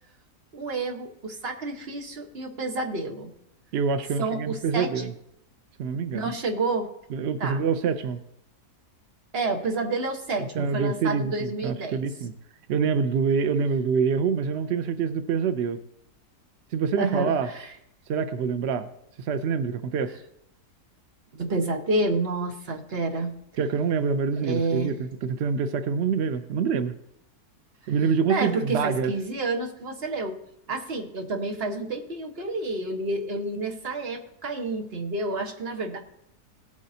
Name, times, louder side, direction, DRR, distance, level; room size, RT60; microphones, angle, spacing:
voice 1, 0.5-3.3 4.2-5.1 6.1-6.9 7.4-7.6 9.3-12.0 17.0-17.7 21.3-23.3 24.4-24.9 28.3-30.4 30.7-36.0, right 2 dB, 40° right, 3 dB, 1.3 m, -29 dB
voice 2, 3.7-5.1 5.8-6.3 7.1-8.2 10.5-12.3 12.7-15.8 16.7-17.5 18.1-18.9 19.2-20.1 23.6-26.9 27.9-29.1, right 6 dB, 70° right, 10 dB, 0.6 m, -26 dB
18.0 x 8.3 x 2.7 m, 0.77 s
omnidirectional pair, 1.7 m